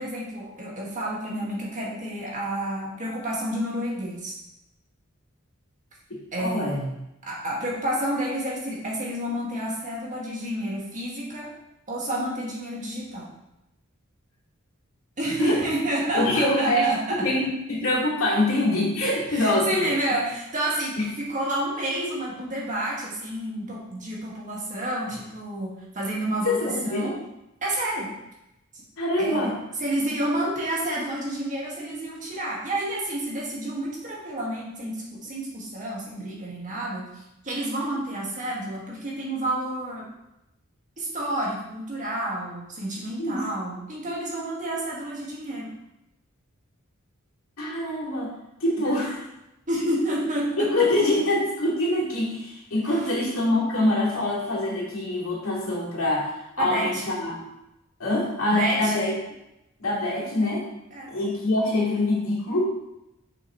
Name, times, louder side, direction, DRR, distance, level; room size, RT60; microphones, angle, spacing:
voice 1, 0.0-4.3 6.3-6.7 7.2-11.5 11.9-13.3 15.2-17.2 19.3-27.1 27.6-28.1 29.2-29.5 29.8-37.0 37.4-40.0 41.0-45.7 49.7-50.9 56.6-57.0 58.5-58.9 60.9-61.1, right 1 dB, 40° right, -4 dB, 1.8 m, -29 dB
voice 2, 6.1-6.9 15.4-15.7 16.1-19.9 21.0-21.1 26.4-27.1 29.0-29.5 43.2-43.5 47.6-48.3 48.6-49.2 50.6-57.4 58.0-59.1 59.8-60.7 61.1-62.7, left 1 dB, 80° left, -5 dB, 2.4 m, -25 dB
6.5 x 6.3 x 3.1 m, 0.89 s
head